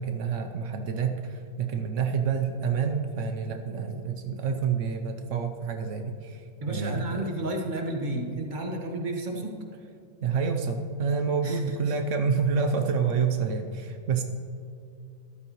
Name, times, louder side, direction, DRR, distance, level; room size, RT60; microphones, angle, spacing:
voice 1, 0.0-7.5 8.1-8.4 10.2-14.2, right 5 dB, 85° right, 6 dB, 0.6 m, -28 dB
voice 2, 6.6-9.5 11.4-11.9, right 1 dB, 30° right, 1 dB, 1.2 m, -32 dB
13.5 x 12.0 x 3.0 m, 2.6 s
omnidirectional pair, 2.1 m